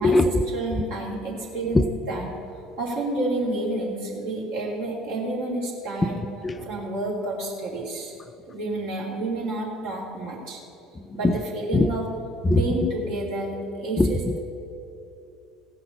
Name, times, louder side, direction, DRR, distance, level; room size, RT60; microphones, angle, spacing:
voice 1, 0.0-0.4 1.7-1.8 6.0-6.7 10.9-11.4 11.7-11.9 12.4-12.7 14.0-14.4, left 2 dB, 20° left, 11 dB, 0.4 m, -22 dB
voice 2, 0.5-2.4 2.8-6.2 6.6-8.1 8.5-10.6 11.1-12.0 12.5-14.4, right 2 dB, 60° right, -4 dB, 2.9 m, -29 dB
16.5 x 5.8 x 6.7 m, 2.8 s
figure-of-eight pair, 65°, 0 cm